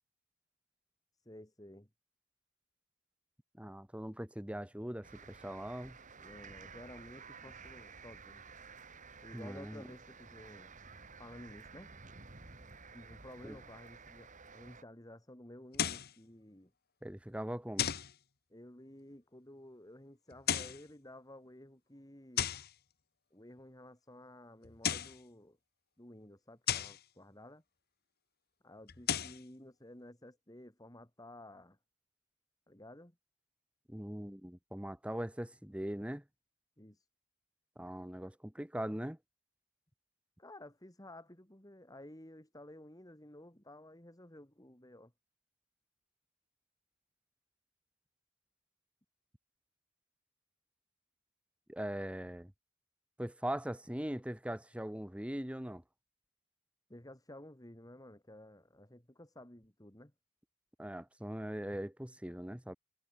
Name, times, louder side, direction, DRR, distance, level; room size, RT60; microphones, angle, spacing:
voice 1, 1.2-1.9 6.2-8.4 9.2-10.7 11.2-11.9 12.9-16.7 18.5-22.6 23.3-25.6 26.0-27.6 28.6-31.8 32.7-33.2 36.8-37.1 40.4-45.1 56.9-60.1, left 1 dB, 15° left, 2.8 m, -53 dB
voice 2, 3.6-6.0 9.3-9.8 13.4-13.6 17.0-17.9 33.9-36.2 37.8-39.2 51.7-52.5 53.2-55.8 60.8-62.8, right 1 dB, 5° right, 1.0 m, -41 dB
sound 1, 5.0-14.8, right 5 dB, 35° right, 2.2 m, -53 dB
sound 2, 15.7-16.1 17.8-18.1 20.3-20.8 22.4-22.7 24.6-25.2 26.7-27.0 28.9-29.4, left 9 dB, 50° left, 1.0 m, -34 dB
head